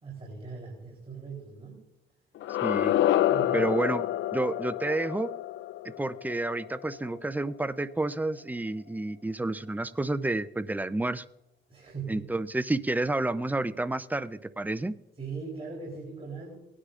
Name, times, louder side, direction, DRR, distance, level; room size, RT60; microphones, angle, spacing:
voice 1, 0.0-1.8 3.3-3.7 11.7-12.3 15.2-16.6, right 5 dB, 30° right, -2 dB, 3.5 m, -40 dB
sound 1, 2.4-7.3, left 13 dB, 70° left, 0.4 m, -28 dB
voice 2, 2.6-2.9 3.5-4.1 4.3-5.3 5.8-11.2 12.1-14.9, right 2 dB, 10° right, 14 dB, 0.5 m, -30 dB
18.0 x 9.9 x 2.5 m, 0.86 s
cardioid pair, 90°, 20 cm